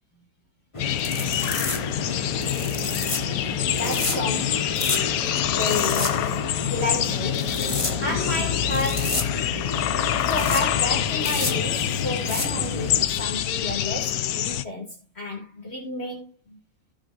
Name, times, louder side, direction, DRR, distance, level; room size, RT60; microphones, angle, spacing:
sound 1, 0.7-13.0, left 2 dB, 25° left, 1.3 m, -30 dB
sound 2, 0.8-14.6, left 11 dB, 80° left, 1.2 m, -26 dB
voice 1, 3.7-4.9 5.5-7.6 8.0-9.3 10.3-16.6, left 2 dB, 45° left, 2.8 m, -32 dB
17.0 x 6.1 x 2.6 m
omnidirectional pair, 1.6 m